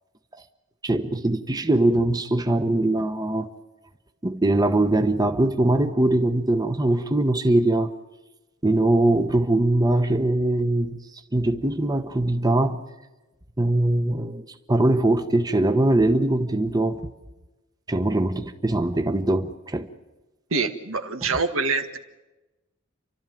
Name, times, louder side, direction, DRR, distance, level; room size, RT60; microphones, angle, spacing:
voice 1, 0.8-3.5 4.2-7.9 8.6-11.0 11.3-12.8 13.6-17.0 17.9-19.9, right 1 dB, 20° right, 1.0 m, -22 dB
voice 2, 20.5-22.0, right 4 dB, 90° right, 1.7 m, -25 dB
29.5 x 13.0 x 9.1 m
head